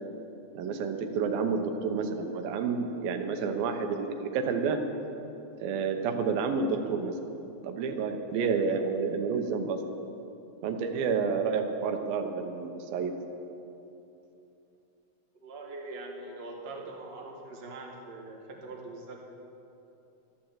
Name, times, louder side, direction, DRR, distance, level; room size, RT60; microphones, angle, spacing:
voice 1, 0.5-4.8 5.6-7.1 7.6-9.8 10.6-13.1, right 5 dB, 90° right, 6 dB, 2.8 m, -29 dB
voice 2, 15.3-19.2, right 2 dB, 35° right, -1 dB, 1.0 m, -42 dB
12.5 x 11.5 x 7.4 m, 2.9 s
omnidirectional pair, 4.1 m